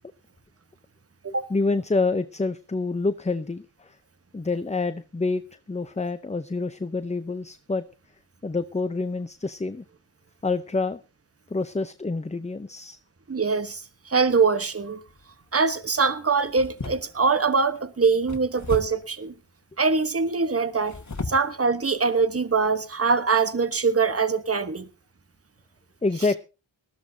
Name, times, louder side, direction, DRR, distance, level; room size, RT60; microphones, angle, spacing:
voice 1, 1.5-3.9 4.3-5.4 5.7-7.9 8.4-9.8 10.4-11.0 11.5-13.0 26.0-26.4, left 3 dB, 15° left, 0.6 m, -27 dB
voice 2, 13.3-15.0 15.5-19.3 19.8-21.0 21.3-24.9, right 4 dB, 30° right, 1.2 m, -23 dB
sound 1, 15.1-15.5 16.5-17.4 18.3-19.1 20.7-21.5 22.1-22.2 22.7-22.9, left 3 dB, 35° left, 1.9 m, -35 dB
19.5 x 14.0 x 2.8 m
wide cardioid pair, 65°, 47 cm